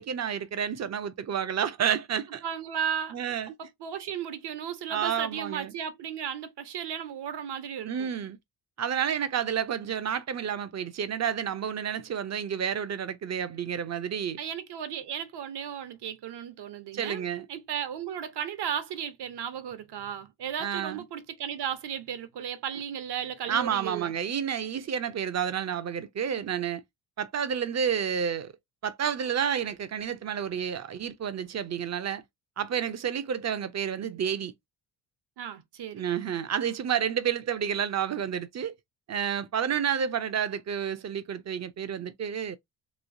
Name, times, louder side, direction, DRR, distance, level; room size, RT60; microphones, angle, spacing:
voice 1, 0.0-2.4 3.1-3.5 4.9-5.7 7.8-8.4 8.8-14.4 16.9-17.5 20.6-21.0 23.5-26.8 27.2-28.5 28.8-32.2 32.6-34.5 35.9-38.7 39.1-42.6, right 8 dB, 40° right, 0.5 m, -30 dB
voice 2, 2.4-3.1 3.6-8.1 14.4-24.1 35.4-36.2, right 8 dB, 65° right, 0.9 m, -35 dB
3.1 x 3.0 x 2.6 m
cardioid pair, 110°, 44 cm